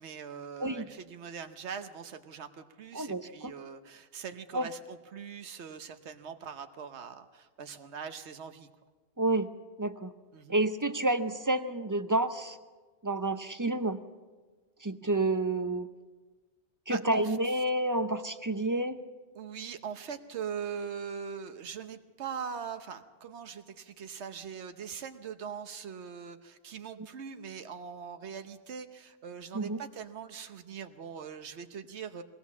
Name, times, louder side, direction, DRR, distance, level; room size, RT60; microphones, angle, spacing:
voice 1, 0.0-8.7 10.3-10.6 16.9-17.4 19.3-32.2, right 7 dB, 90° right, 8 dB, 1.2 m, -41 dB
voice 2, 2.9-3.5 4.5-4.7 9.2-9.5 9.8-10.1 10.5-12.6 13.0-14.0 14.8-15.9 16.9-19.0 29.5-29.8, right 2 dB, 20° right, 10 dB, 0.6 m, -29 dB
21.5 x 17.0 x 7.2 m, 1.3 s
omnidirectional pair, 1.1 m